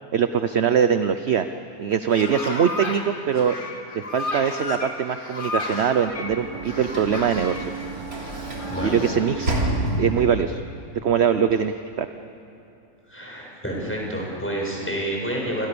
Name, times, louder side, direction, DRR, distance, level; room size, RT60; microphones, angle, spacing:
voice 1, 0.1-1.5 1.8-3.6 4.1-7.7 8.8-9.5 10.0-10.6 11.0-12.1, right 7 dB, 55° right, 9 dB, 1.0 m, -22 dB
sound 1, 1.9-3.0 3.3-6.3 6.7-7.6 8.2-9.3, left 2 dB, 35° left, 2.9 m, -33 dB
Sliding door / Slam, 5.8-10.5, right 2 dB, 90° right, 3.6 m, -29 dB
voice 2, 8.7-9.0 9.3-9.5 13.1-15.7, right 1 dB, 10° left, -2 dB, 7.2 m, -29 dB
28.5 x 25.0 x 7.0 m, 2.8 s
omnidirectional pair, 1.5 m